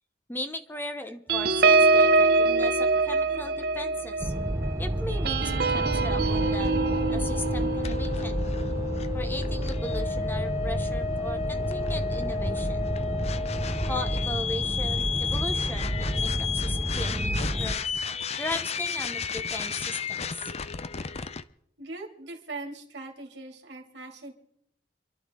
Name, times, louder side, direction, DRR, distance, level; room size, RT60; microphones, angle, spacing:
voice 1, 0.3-4.3 4.8-6.8 7.0-8.4 9.1-12.9 13.9-17.8 18.3-20.5, left 1 dB, 10° left, 8 dB, 0.9 m, -37 dB
sound 1, 1.3-10.2 10.6-10.9 11.1-11.5, right 3 dB, 60° right, 0.8 m, -25 dB
sound 2, 4.2-17.7, right 1 dB, 15° right, 0.8 m, -30 dB
sound 3, 6.4-21.4, left 6 dB, 35° left, 0.5 m, -33 dB
voice 2, 21.8-24.3, right 2 dB, 80° right, 2 dB, 2.7 m, -40 dB
27.0 x 11.5 x 3.7 m, 0.75 s
head